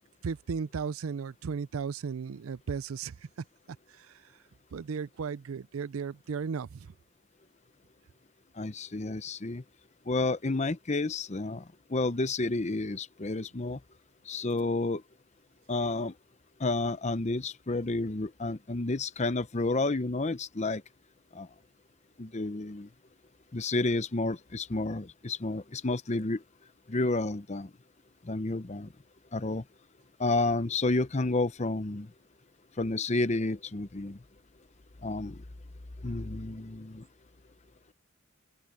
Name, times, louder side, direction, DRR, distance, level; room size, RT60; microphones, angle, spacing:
voice 1, 0.2-3.1 3.7-4.1 4.7-6.9, right 6 dB, 80° right, 0.4 m, -35 dB
voice 2, 8.6-9.6 10.1-11.6 11.9-13.8 14.3-15.0 15.7-16.1 16.6-20.8 21.3-21.5 22.2-22.9 23.5-26.4 26.9-27.7 28.2-28.9 29.3-29.6 30.2-32.1 32.8-34.2 35.0-35.4 36.0-37.0, left 2 dB, 35° left, 0.7 m, -30 dB
open air
head